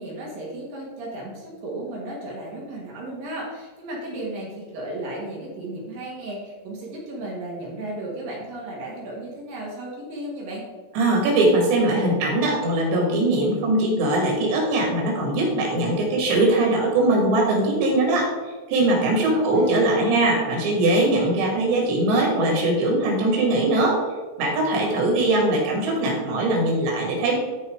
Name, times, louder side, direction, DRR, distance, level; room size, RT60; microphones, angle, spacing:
voice 1, 0.0-10.6 19.1-20.0, right 1 dB, 60° right, -3 dB, 3.2 m, -34 dB
voice 2, 11.0-18.3 18.7-24.0 24.4-27.4, right 2 dB, 90° right, -1 dB, 4.6 m, -21 dB
12.5 x 4.7 x 4.7 m, 1.3 s
omnidirectional pair, 4.9 m